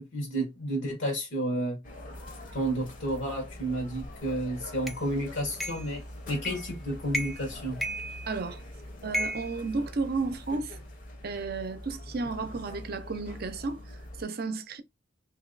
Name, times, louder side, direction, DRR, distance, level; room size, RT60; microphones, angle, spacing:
voice 1, 0.0-1.8 2.5-6.0 6.3-7.8, right 1 dB, 75° left, 1.1 m, -31 dB
sound 1, 1.8-14.2, left 1 dB, 45° left, 0.8 m, -44 dB
sound 2, 4.9-5.0 5.6-5.9 6.4-6.7 7.1-7.5 7.8-8.6 9.1-10.4, equal, ahead, 0.4 m, -34 dB
voice 2, 8.3-8.6 9.0-10.8 11.2-14.8, right 3 dB, 55° right, 0.6 m, -33 dB
3.0 x 2.6 x 3.9 m
head